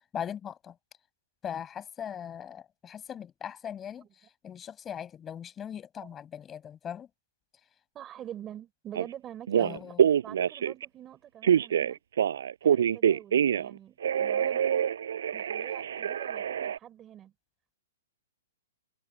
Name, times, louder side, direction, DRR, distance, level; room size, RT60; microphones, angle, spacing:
voice 1, 0.1-0.7 1.4-4.0 4.4-7.1 9.6-10.1, left 9 dB, 15° left, 6.2 m, -39 dB
voice 2, 7.9-9.8 10.2-12.0 12.6-14.9 15.3-17.3, right 11 dB, 15° right, 4.3 m, -45 dB
Telephone, 8.9-9.1 9.5-10.8 11.4-13.7 14.0-16.8, right 9 dB, 70° right, 5.2 m, -26 dB
hypercardioid pair, 165°, 0 cm